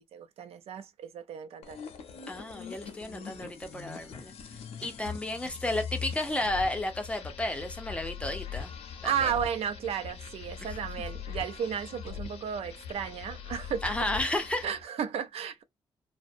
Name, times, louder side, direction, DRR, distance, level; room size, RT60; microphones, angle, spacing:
voice 1, 0.0-1.8 9.0-13.9 14.6-15.6, right 8 dB, 80° right, 0.4 m, -34 dB
sound 1, 1.6-14.8, left 7 dB, 90° left, 0.6 m, -41 dB
voice 2, 2.3-4.3 4.8-8.7 9.0-9.3 13.8-14.6, left 1 dB, 10° left, 0.6 m, -32 dB
2.5 x 2.0 x 2.5 m
cardioid pair, 125°, 10 cm